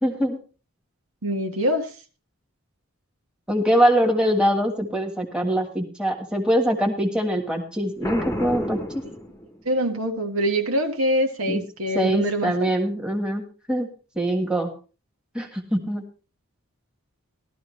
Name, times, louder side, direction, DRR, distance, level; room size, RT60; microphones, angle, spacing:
voice 1, 0.0-0.4 3.5-9.0 11.5-11.6 11.9-13.9 14.1-14.7 15.3-16.0, equal, 5° right, 2 dB, 1.6 m, -23 dB
voice 2, 1.2-1.9 9.6-12.7, equal, 75° right, 4 dB, 1.6 m, -24 dB
Boom, 8.0-9.9, equal, 10° left, 1.0 m, -31 dB
15.5 x 12.5 x 3.2 m, 0.35 s
head